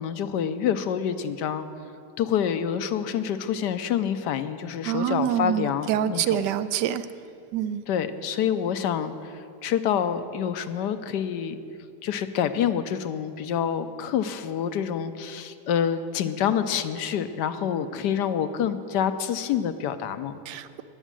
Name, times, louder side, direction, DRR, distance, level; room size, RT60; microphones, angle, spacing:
voice 1, 0.0-1.7 2.2-6.4 7.9-11.6 12.0-20.4, left 8 dB, 80° left, 11 dB, 1.3 m, -27 dB
voice 2, 4.8-7.1 7.5-7.8 20.5-20.8, right 10 dB, 80° right, 13 dB, 1.2 m, -26 dB
19.0 x 7.3 x 7.5 m, 2.5 s
omnidirectional pair, 1.8 m